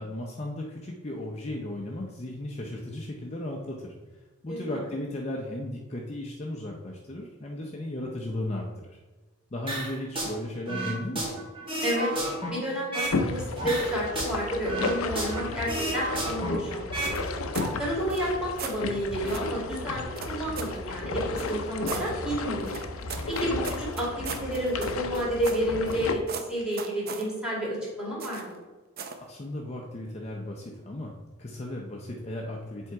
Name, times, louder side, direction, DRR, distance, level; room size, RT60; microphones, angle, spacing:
voice 1, 0.0-3.9 4.4-9.0 9.5-11.3 29.3-32.9, left 1 dB, 30° left, 0 dB, 0.6 m, -35 dB
voice 2, 4.5-4.8 11.8-12.1 12.5-17.3 17.7-22.8 23.3-28.6, equal, 5° right, -5 dB, 2.1 m, -30 dB
sound 1, 9.7-10.3 10.7-13.2 13.6-15.4 15.7-17.2 17.4-17.7, right 1 dB, 25° right, 1.6 m, -31 dB
sound 2, 13.1-26.2, left 3 dB, 75° left, 0.6 m, -33 dB
sound 3, 17.0-17.7 18.1-18.8 19.3-19.5 20.2-20.8 21.4-22.1 22.6-26.0 26.3-27.3 28.2-28.6 29.0-29.2, right 5 dB, 45° right, 0.6 m, -38 dB
7.6 x 3.5 x 4.6 m, 1.2 s
head